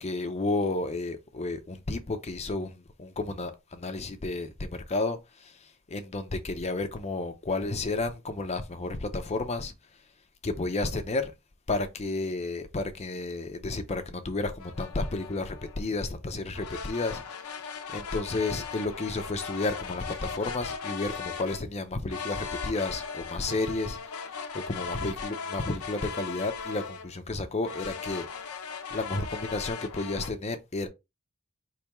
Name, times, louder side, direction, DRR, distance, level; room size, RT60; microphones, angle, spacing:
voice 1, 0.0-9.7 10.4-11.3 11.7-28.5 28.9-30.9, left 2 dB, 30° left, 0.6 m, -32 dB
sound 1, 14.6-15.8 16.5-21.6 22.1-27.2 27.6-30.3, left 6 dB, 85° left, 0.8 m, -38 dB
4.8 x 3.4 x 3.0 m
head